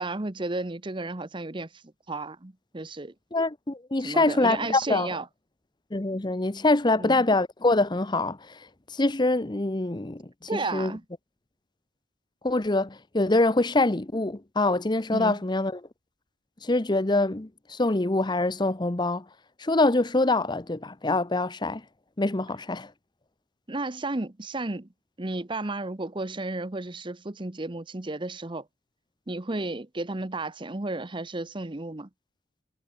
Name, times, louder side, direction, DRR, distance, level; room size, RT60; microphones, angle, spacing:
voice 1, 0.0-1.8 2.1-3.1 4.0-5.3 7.0-7.3 10.5-11.0 15.1-15.4 23.7-24.9 25.2-28.7 29.3-32.1, right 2 dB, 25° right, 0.9 m, -33 dB
voice 2, 3.3-5.2 5.9-8.6 8.9-10.9 12.4-15.8 16.6-19.2 19.6-21.8 22.2-22.9, left 2 dB, 20° left, 0.8 m, -25 dB
head